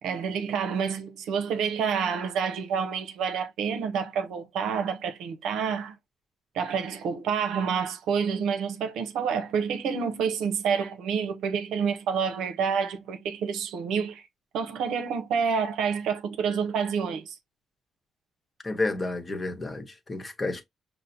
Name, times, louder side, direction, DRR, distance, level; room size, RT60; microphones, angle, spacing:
voice 1, 0.0-5.9 6.5-14.2 14.5-17.4, right 6 dB, 80° right, 0.6 m, -28 dB
voice 2, 18.6-20.6, left 2 dB, 30° left, 0.9 m, -31 dB
5.6 x 2.0 x 2.7 m
cardioid pair, 90°, 0 cm